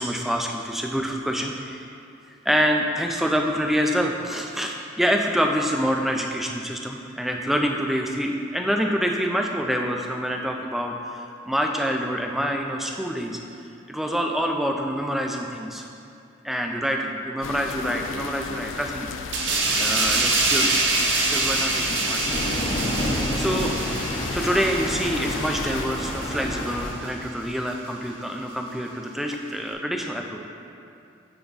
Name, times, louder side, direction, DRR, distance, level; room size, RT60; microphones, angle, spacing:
voice 1, 0.0-1.9 2.5-13.4 13.9-15.9 16.4-19.1 19.8-20.8 21.1-22.2 23.1-23.8 24.3-30.4, equal, ahead, 2 dB, 0.3 m, -26 dB
sound 1, 17.4-25.9, left 5 dB, 85° left, 0.4 m, -34 dB
sound 2, 19.3-26.5 26.9-27.1, right 3 dB, 65° right, 0.8 m, -25 dB
Thunder, 22.3-26.9, left 1 dB, 40° left, 0.8 m, -29 dB
9.6 x 3.4 x 4.0 m, 2.6 s
head